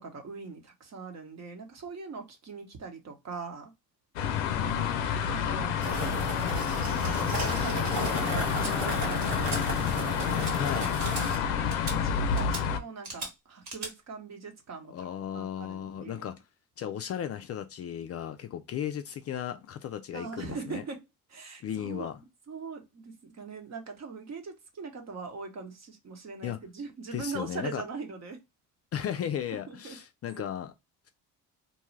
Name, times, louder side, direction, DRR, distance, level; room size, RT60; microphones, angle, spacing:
voice 1, 0.0-3.7 5.3-8.2 8.6-15.1 15.3-16.3 20.1-21.0 21.3-22.1 22.5-28.4 29.7-30.0, right 4 dB, 45° right, 1.0 m, -41 dB
sound 1, 4.2-12.8, left 7 dB, 85° left, 0.5 m, -29 dB
voice 2, 4.2-5.2 10.6-11.0 14.9-16.4 16.8-20.8 21.6-22.2 26.4-26.6 27.1-27.8 28.9-30.7, left 9 dB, 40° left, 0.4 m, -35 dB
sound 2, 5.8-11.4, right 2 dB, 75° right, 1.6 m, -35 dB
sound 3, 8.6-8.7 9.2-9.6 9.9-10.1 10.4-10.5 11.0-11.2 11.7-12.0 12.4-12.6 13.0-13.3 13.6-13.9, right 2 dB, 60° right, 1.4 m, -38 dB
2.7 x 2.3 x 3.1 m
supercardioid pair, 70°, 38 cm